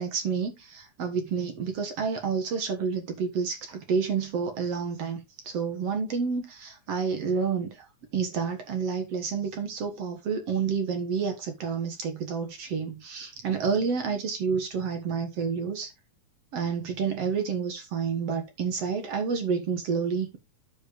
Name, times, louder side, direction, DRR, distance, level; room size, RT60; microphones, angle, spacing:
voice 1, 0.0-7.9 8.1-15.9 16.5-20.4, right 6 dB, 55° right, 2.3 m, -29 dB
9.9 x 7.6 x 3.1 m
omnidirectional pair, 3.6 m